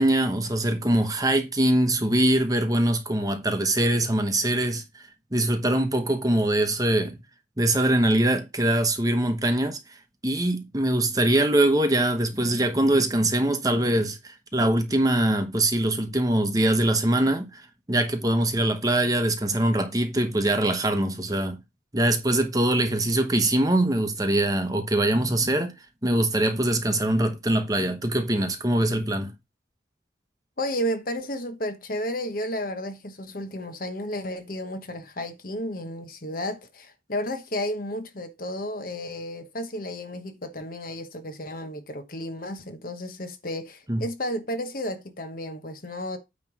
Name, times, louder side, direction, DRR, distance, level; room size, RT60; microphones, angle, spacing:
voice 1, 0.0-5.0 5.3-7.2 7.6-9.8 10.2-17.6 17.9-21.6 21.9-25.7 26.0-29.3 43.9-44.0, right 1 dB, 20° right, 1.0 m, -23 dB
voice 2, 30.6-46.2, equal, 45° left, 1.1 m, -32 dB
9.2 x 3.3 x 6.0 m
head